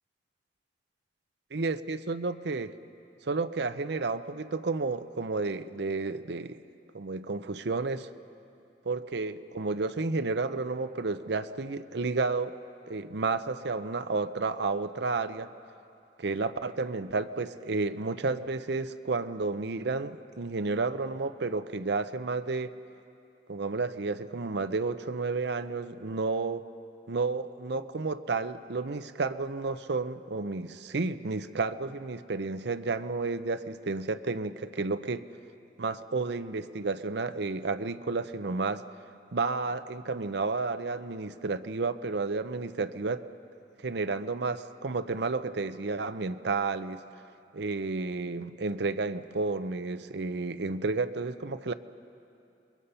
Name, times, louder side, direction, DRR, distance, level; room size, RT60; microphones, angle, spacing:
voice 1, 1.5-2.7 3.2-6.6 6.9-8.1 8.8-12.5 12.9-15.5 16.2-22.7 23.5-26.6 27.1-35.2 35.8-38.8 39.3-43.2 43.8-47.0 47.5-51.7, right 3 dB, 65° right, 10 dB, 0.7 m, -31 dB
28.5 x 22.5 x 5.7 m, 2.6 s
head